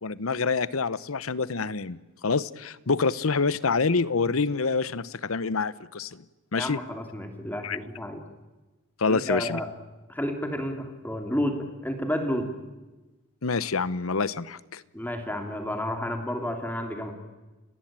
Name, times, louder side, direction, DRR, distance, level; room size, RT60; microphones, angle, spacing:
voice 1, 0.0-6.2 6.5-6.8 7.6-7.8 9.0-9.6 13.4-14.8, left 4 dB, 85° left, 18 dB, 0.9 m, -27 dB
voice 2, 6.6-8.2 9.1-9.7 10.1-12.5 14.9-17.1, equal, 10° left, 5 dB, 2.9 m, -31 dB
30.0 x 19.5 x 8.9 m, 1.1 s
head